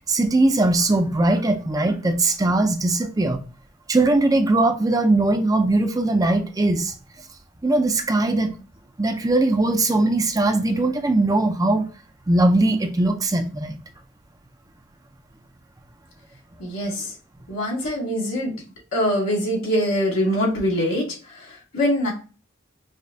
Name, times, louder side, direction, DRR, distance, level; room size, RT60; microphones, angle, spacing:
voice 1, 0.1-3.4 3.9-6.9 7.6-8.5 9.0-11.8 12.3-13.8, right 2 dB, 15° right, 0.4 m, -20 dB
voice 2, 16.6-17.1 17.5-18.5 18.9-21.1 21.3-22.1, equal, 70° left, 2.0 m, -23 dB
4.9 x 2.2 x 2.6 m
head